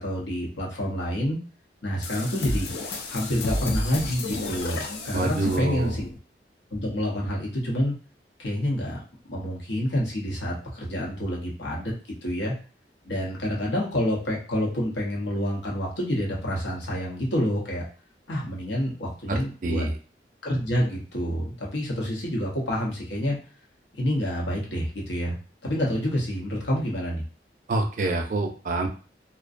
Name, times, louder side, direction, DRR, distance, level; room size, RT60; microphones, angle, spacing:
voice 1, 0.0-1.4 1.8-2.7 3.1-6.1 6.7-7.9 8.4-9.0 9.3-11.9 12.2-12.6 13.0-17.8 18.3-19.9 20.4-23.4 23.9-25.4 25.6-27.2, equal, 85° left, -3 dB, 0.8 m, -28 dB
sound 1, 2.0-6.2, left 2 dB, 65° left, 0.4 m, -32 dB
voice 2, 5.1-5.9 19.3-19.9 27.7-28.9, right 2 dB, 45° right, 3 dB, 0.4 m, -26 dB
2.5 x 2.1 x 2.4 m, 0.36 s
head